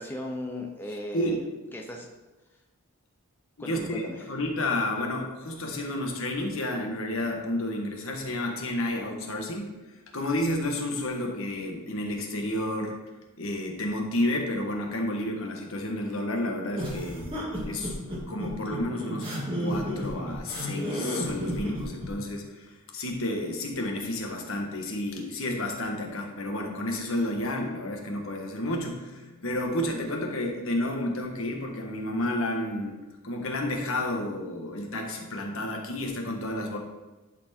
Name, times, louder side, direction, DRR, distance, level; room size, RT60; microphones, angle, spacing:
voice 1, 0.0-2.1 3.6-4.3, left 1 dB, 10° left, 0 dB, 0.6 m, -37 dB
voice 2, 3.6-9.7 10.1-13.0 13.4-18.0 18.3-19.3 19.6-36.8, left 1 dB, 65° left, 1 dB, 1.4 m, -31 dB
sound 1, 16.8-22.1, equal, 25° right, 2.1 m, -32 dB
11.0 x 4.5 x 4.4 m, 1.1 s
head